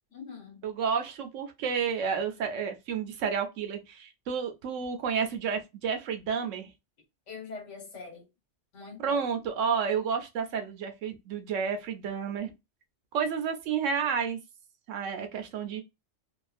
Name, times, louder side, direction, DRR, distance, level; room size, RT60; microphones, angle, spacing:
voice 1, 0.1-0.6 7.3-8.3 8.7-9.3, left 4 dB, 75° left, 1.4 m, -43 dB
voice 2, 0.6-6.7 9.0-12.5 13.1-14.4 14.9-15.8, right 6 dB, 90° right, 1.0 m, -31 dB
2.7 x 2.3 x 2.4 m
omnidirectional pair, 1.3 m